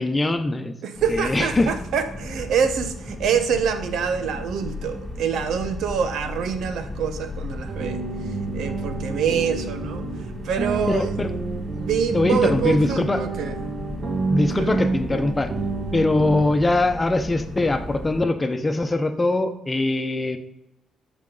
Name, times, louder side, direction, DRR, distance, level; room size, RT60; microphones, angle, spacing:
voice 1, 0.0-0.7 1.1-1.7 10.9-11.3 12.1-13.2 14.3-15.5 15.9-20.4, left 2 dB, 20° left, 8 dB, 1.0 m, -22 dB
voice 2, 0.8-8.0 8.5-10.1 10.4-11.1 11.7-13.6 14.6-14.7, right 7 dB, 75° right, 9 dB, 1.1 m, -25 dB
sound 1, 0.9-18.2, left 1 dB, 10° right, 2.5 m, -35 dB
sound 2, 7.7-16.5, right 3 dB, 40° right, 1.8 m, -29 dB
13.5 x 5.2 x 4.0 m, 0.82 s
cardioid pair, 90°, 0 cm